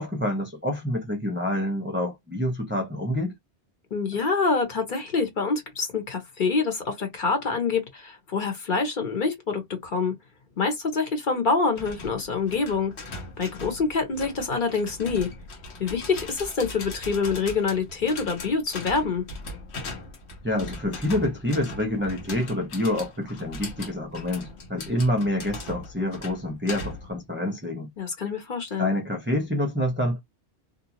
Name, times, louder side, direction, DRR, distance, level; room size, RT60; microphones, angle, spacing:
voice 1, 0.0-3.3 20.4-27.9 28.8-30.2, left 1 dB, 15° right, 0.5 m, -27 dB
voice 2, 3.9-10.1 10.6-12.9 13.4-15.3 15.8-19.2 28.0-28.9, left 4 dB, 50° left, 1.2 m, -26 dB
sound 1, 11.8-27.2, left 2 dB, 75° left, 1.1 m, -39 dB
2.7 x 2.3 x 2.7 m
omnidirectional pair, 1.1 m